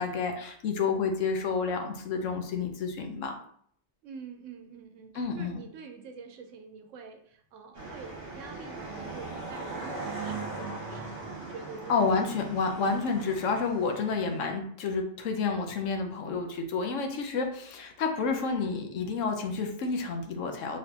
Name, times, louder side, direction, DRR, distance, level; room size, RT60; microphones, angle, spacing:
voice 1, 0.0-3.3 5.1-5.6 11.9-20.8, left 4 dB, 80° left, 4 dB, 1.1 m, -30 dB
voice 2, 4.0-12.3, right 5 dB, 80° right, 5 dB, 1.0 m, -46 dB
sound 1, 7.7-14.4, right 3 dB, 50° right, 1.7 m, -39 dB
5.7 x 3.2 x 2.8 m, 0.64 s
omnidirectional pair, 1.3 m